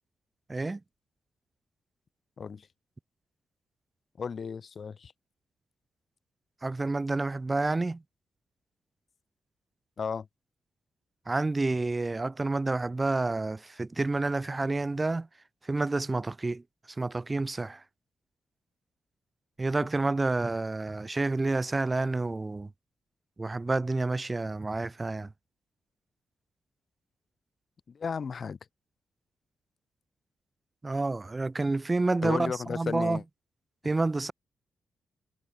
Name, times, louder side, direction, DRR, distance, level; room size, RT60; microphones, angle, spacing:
voice 1, 0.5-0.8 6.6-8.0 11.3-15.3 15.6-16.6 17.0-17.8 19.6-22.7 23.4-25.3 30.8-33.2 33.8-34.3, right 3 dB, 25° right, 0.5 m, -29 dB
voice 2, 2.4-2.7 4.2-5.1 10.0-10.3 27.9-28.6 32.2-33.2, left 6 dB, 50° left, 1.1 m, -34 dB
cardioid pair, 90°, 0 cm